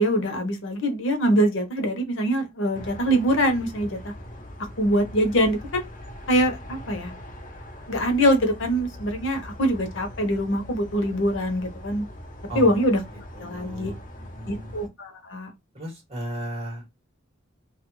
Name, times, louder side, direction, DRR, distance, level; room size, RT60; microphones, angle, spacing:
voice 1, 0.0-4.1 4.8-5.9 6.3-7.1 7.9-12.1 12.5-13.0 13.4-13.9 14.5-15.5, equal, 80° left, 0.8 m, -23 dB
sound 1, 2.7-14.9, equal, 40° left, 0.6 m, -41 dB
voice 2, 12.5-14.8 15.7-17.1, right 1 dB, 30° right, 1.6 m, -36 dB
2.7 x 2.4 x 3.0 m
head